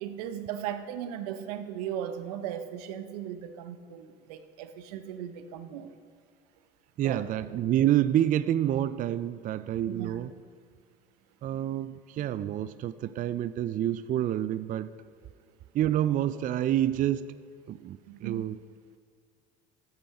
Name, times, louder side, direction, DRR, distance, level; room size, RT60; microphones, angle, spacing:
voice 1, 0.0-5.9 7.0-7.2 9.9-10.2 18.1-18.4, right 10 dB, 90° right, 9 dB, 0.8 m, -37 dB
voice 2, 7.0-10.3 11.4-14.9 15.7-17.3 17.7-18.6, right 12 dB, 45° right, 14 dB, 0.4 m, -28 dB
13.5 x 8.6 x 5.8 m, 2.2 s
supercardioid pair, 85°, 19 cm